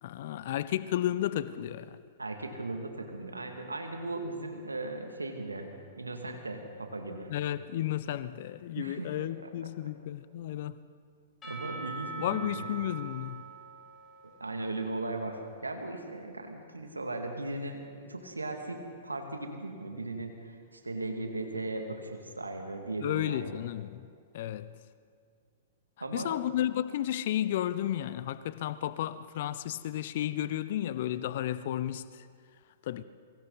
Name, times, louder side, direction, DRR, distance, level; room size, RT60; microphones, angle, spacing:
voice 1, 0.0-2.0 7.3-10.8 12.2-13.4 23.0-24.1 24.3-24.8 26.1-32.3 32.8-33.0, left 12 dB, 55° left, 0.7 m, -33 dB
voice 2, 2.2-5.7 6.0-7.3 8.8-9.5 11.4-12.7 14.2-23.6 26.0-26.4, right 2 dB, 85° right, 2.3 m, -37 dB
Percussion / Church bell, 11.4-15.3, right 5 dB, 20° left, 7.4 m, -43 dB
28.0 x 23.5 x 4.1 m
figure-of-eight pair, 105°, 0 cm